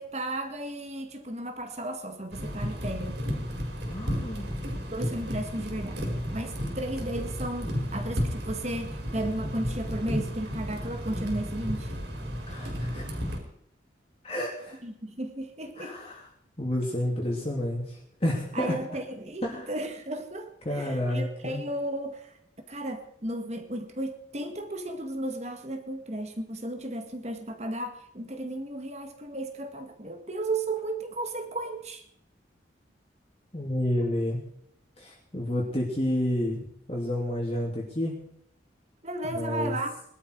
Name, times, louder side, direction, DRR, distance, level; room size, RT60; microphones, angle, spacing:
voice 1, 0.0-3.2 4.9-11.9 14.8-15.9 18.5-22.3 22.7-32.0 39.0-40.0, right 1 dB, 35° right, 6 dB, 2.0 m, -34 dB
Evaporator tank in a chemical Plant, 2.3-13.4, equal, 65° right, 4.7 m, -33 dB
voice 2, 3.9-4.5 12.5-13.0 14.2-14.8 15.8-16.2 16.6-18.7 19.4-19.7 20.6-21.6 33.5-34.4 35.0-36.6 36.9-38.1 39.3-39.8, left 1 dB, 30° left, -2 dB, 3.0 m, -30 dB
21.5 x 12.5 x 4.8 m, 0.72 s
head